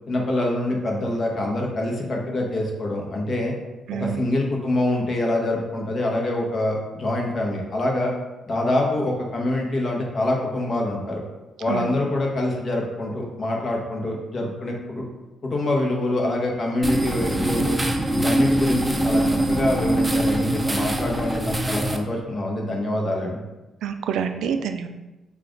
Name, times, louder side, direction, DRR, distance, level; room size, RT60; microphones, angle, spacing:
voice 1, 0.1-3.5 4.0-8.1 8.5-11.2 11.6-15.0 15.4-17.8 18.1-23.4, left 1 dB, 45° left, 0 dB, 1.1 m, -25 dB
voice 2, 3.9-4.3 11.7-11.9 23.8-24.9, right 7 dB, 85° right, 7 dB, 0.4 m, -27 dB
sound 1, 16.8-22.0, right 1 dB, 15° right, 0.5 m, -23 dB
5.7 x 2.4 x 3.8 m, 1.1 s
cardioid pair, 100°, 0 cm